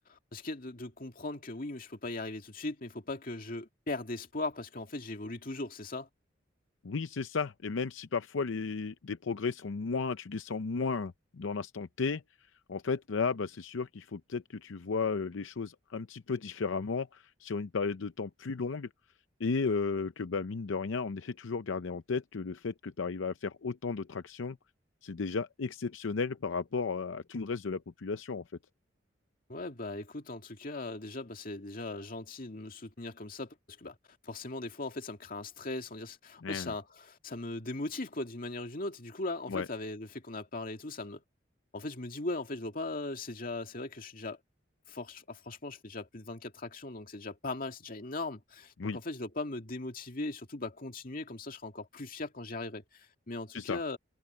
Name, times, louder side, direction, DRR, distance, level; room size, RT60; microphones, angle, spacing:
voice 1, 0.1-6.1 29.5-34.0 34.2-41.2 41.7-44.4 44.9-54.0, left 2 dB, 45° left, 2.2 m, -39 dB
voice 2, 6.8-12.2 12.7-18.9 19.4-24.6 25.0-28.4 36.4-36.7 39.5-39.7 48.8-49.0 53.5-53.8, left 4 dB, 80° left, 0.6 m, -34 dB
head